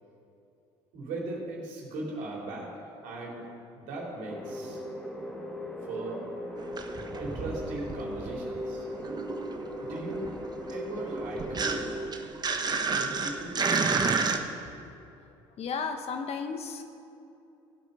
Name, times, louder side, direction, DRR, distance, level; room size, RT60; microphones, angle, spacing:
voice 1, 0.9-3.5 3.7-4.8 5.8-6.2 7.2-8.9 9.8-10.3 10.7-12.0 12.8-13.6, right 2 dB, 70° right, -3 dB, 3.6 m, -38 dB
sound 1, 4.3-12.0, equal, 5° left, 2.2 m, -38 dB
sound 2, 6.6-8.5 8.8-14.4, right 4 dB, 30° right, 1.1 m, -31 dB
voice 2, 15.6-16.8, left 5 dB, 50° left, 6 dB, 1.2 m, -33 dB
16.0 x 8.0 x 5.6 m, 2.7 s
hypercardioid pair, 70°, 13 cm